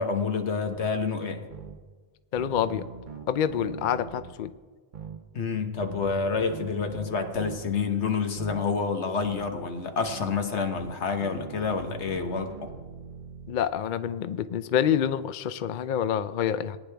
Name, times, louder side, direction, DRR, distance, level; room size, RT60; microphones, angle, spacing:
voice 1, 0.0-1.4 5.3-12.7, left 5 dB, 80° left, 6 dB, 1.4 m, -28 dB
sound 1, 0.7-0.9 1.5-1.8 2.4-4.3 4.9-5.2 5.8-7.8 8.4-8.6 9.2-9.5 10.1-10.3 10.8-13.6, right 5 dB, 45° right, 1.0 m, -42 dB
voice 2, 2.3-2.9 3.3-4.5 13.5-16.8, left 9 dB, 60° left, 13 dB, 0.6 m, -27 dB
18.5 x 9.9 x 3.4 m, 1.4 s
omnidirectional pair, 1.1 m